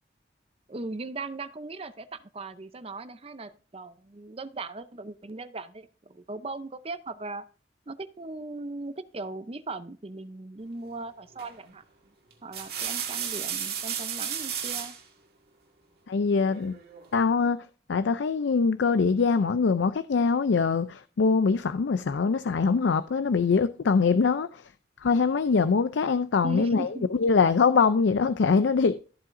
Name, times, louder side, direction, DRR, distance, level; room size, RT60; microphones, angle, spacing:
voice 1, 0.7-7.4 7.9-11.8 12.4-14.9 26.4-27.1, right 2 dB, 30° right, 0.6 m, -38 dB
sound 1, 11.4-11.7 12.3-15.0 16.5-17.1, right 8 dB, 55° right, 1.9 m, -33 dB
voice 2, 16.1-16.8 17.1-24.6 25.0-29.0, left 5 dB, 80° left, 0.4 m, -23 dB
13.5 x 7.7 x 2.6 m
head